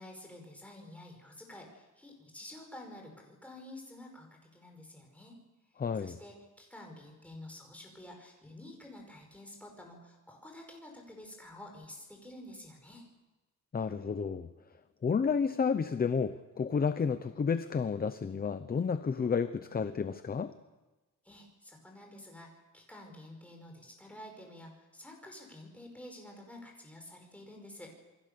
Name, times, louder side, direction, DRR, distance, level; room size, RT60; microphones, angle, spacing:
voice 1, 0.0-5.4 6.0-13.0 21.3-27.9, left 1 dB, 5° left, 1 dB, 5.4 m, -50 dB
voice 2, 5.8-6.2 13.7-14.5 15.0-20.5, left 6 dB, 25° left, 11 dB, 0.7 m, -31 dB
28.0 x 21.5 x 6.9 m, 1.1 s
wide cardioid pair, 165°, 34 cm